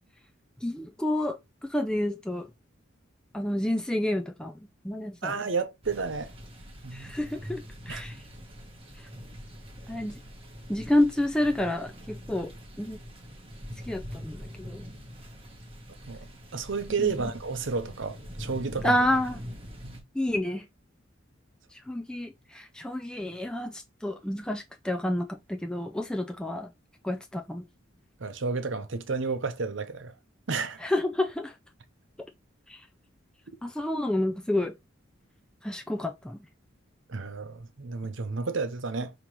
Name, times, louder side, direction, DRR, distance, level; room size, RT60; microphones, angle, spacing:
voice 1, 0.6-2.5 3.3-4.6 4.8-5.5 6.9-8.2 9.0-9.1 9.9-10.1 10.7-12.5 12.8-13.0 13.9-14.9 17.0-17.3 18.8-19.4 20.1-20.6 21.7-26.7 27.0-27.7 30.8-31.5 32.7-32.9 33.6-34.7 35.6-36.4, left 1 dB, 5° left, 0.4 m, -29 dB
voice 2, 5.2-6.3 6.8-7.1 7.9-8.0 16.1-16.3 16.5-19.0 19.8-20.0 28.2-30.1 30.5-30.8 37.1-39.1, right 4 dB, 65° right, 0.7 m, -31 dB
sound 1, 5.8-20.0, equal, 30° right, 1.1 m, -43 dB
5.4 x 3.0 x 3.0 m
head